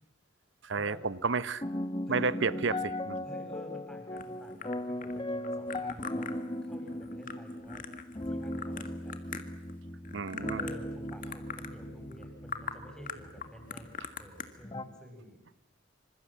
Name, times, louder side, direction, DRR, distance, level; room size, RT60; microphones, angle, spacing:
voice 1, 0.6-1.6 2.1-2.7 3.1-3.2 10.1-10.7, right 4 dB, 65° right, 16 dB, 0.9 m, -31 dB
sound 1, 1.0-14.8, left 1 dB, 25° left, 1.3 m, -38 dB
voice 2, 2.1-2.7 3.2-6.3 6.6-7.8 8.3-9.2 10.6-15.4, left 1 dB, 5° left, 2 dB, 7.1 m, -49 dB
sound 2, 4.2-9.7 10.0-10.8 11.1-11.7 12.1-12.2 12.5-12.8 13.1-14.5, left 6 dB, 45° left, 1.9 m, -41 dB
27.0 x 26.0 x 7.5 m, 0.83 s
head